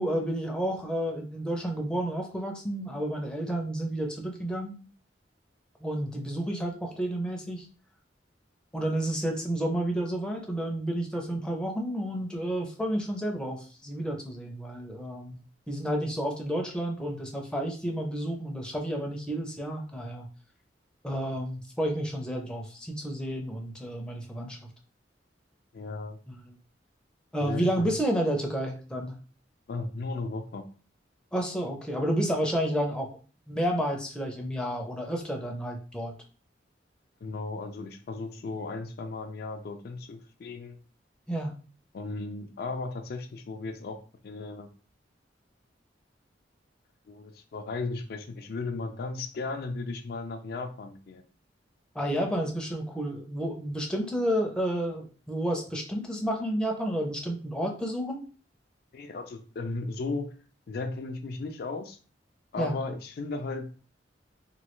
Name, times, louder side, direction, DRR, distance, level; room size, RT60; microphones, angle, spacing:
voice 1, 0.0-4.7 5.8-7.7 8.7-15.4 15.7-20.2 21.0-24.6 26.3-26.4 27.3-29.2 31.3-33.1 33.5-36.1 41.3-41.5 51.9-58.2 62.6-62.7, right 1 dB, 5° left, 0 dB, 0.5 m, -30 dB
voice 2, 25.7-26.2 27.4-28.0 29.7-30.7 37.2-40.8 41.9-44.0 44.2-44.7 47.1-51.2 58.9-60.3 60.7-62.0 62.5-63.7, left 3 dB, 60° left, 6 dB, 0.4 m, -35 dB
3.1 x 2.2 x 3.0 m, 0.38 s
head